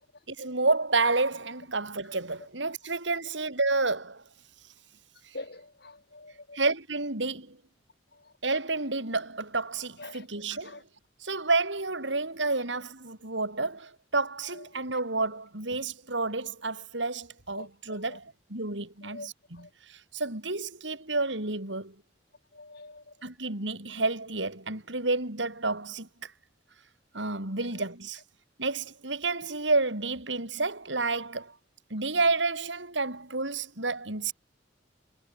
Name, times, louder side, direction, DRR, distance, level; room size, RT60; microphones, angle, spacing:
voice 1, 0.3-4.2 6.5-7.6 8.4-10.8 11.2-21.9 23.2-26.3 27.1-28.2 28.6-31.5 31.9-34.3, right 3 dB, 85° right, 5.9 m, -30 dB
voice 2, 5.3-6.6 8.1-8.2 10.0-10.8 14.5-14.6 17.5-17.7 18.0-18.2 19.0-19.3 19.6-19.7 22.5-23.1, left 2 dB, 60° left, 5.0 m, -45 dB
head